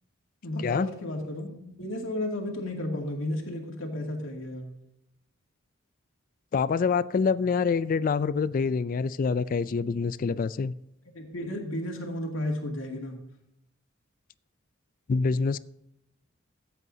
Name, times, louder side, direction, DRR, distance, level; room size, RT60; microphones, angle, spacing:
voice 1, 0.4-1.5 1.8-4.7 11.1-13.2, left 1 dB, 80° left, 1 dB, 2.3 m, -33 dB
voice 2, 6.5-10.7 15.1-15.6, left 5 dB, 45° left, 16 dB, 0.3 m, -26 dB
14.5 x 8.2 x 2.7 m, 0.85 s
head